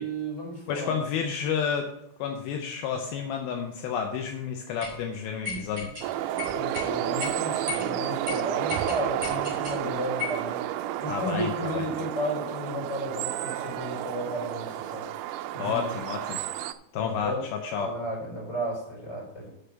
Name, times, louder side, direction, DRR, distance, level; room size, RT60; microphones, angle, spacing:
voice 1, 0.0-1.0 6.5-10.6 11.0-15.1 15.5-15.9 16.9-17.4 17.7-19.5, equal, 25° left, -3 dB, 3.9 m, -33 dB
voice 2, 0.7-1.9 2.2-6.3 11.1-11.9 15.6-16.4 16.9-17.9, left 7 dB, 80° left, 4 dB, 2.2 m, -31 dB
sound 1, 4.8-5.0 5.4-6.1 6.4-6.9 7.2-7.3 7.7-7.9 8.3-8.4 8.7-9.8 10.2-10.4, left 3 dB, 25° right, 3.4 m, -34 dB
sound 2, 6.0-16.7, right 13 dB, 85° right, 2.3 m, -31 dB
6.7 x 6.5 x 7.1 m, 0.83 s
omnidirectional pair, 5.2 m